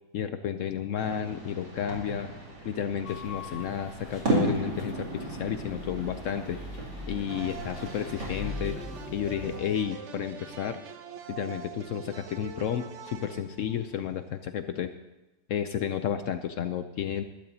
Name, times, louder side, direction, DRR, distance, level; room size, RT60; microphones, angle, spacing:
voice 1, 0.1-2.3 2.6-6.6 7.1-8.8 9.1-10.8 11.3-14.9 15.5-17.2, left 9 dB, 80° left, 9 dB, 0.7 m, -32 dB
sound 1, 1.0-8.7, right 2 dB, 70° right, 3.4 m, -35 dB
sound 2, 3.0-9.6, left 2 dB, 40° left, 1.9 m, -41 dB
sound 3, 7.3-14.3, right 6 dB, 55° right, 0.9 m, -44 dB
21.0 x 12.0 x 2.8 m, 1.0 s
omnidirectional pair, 1.9 m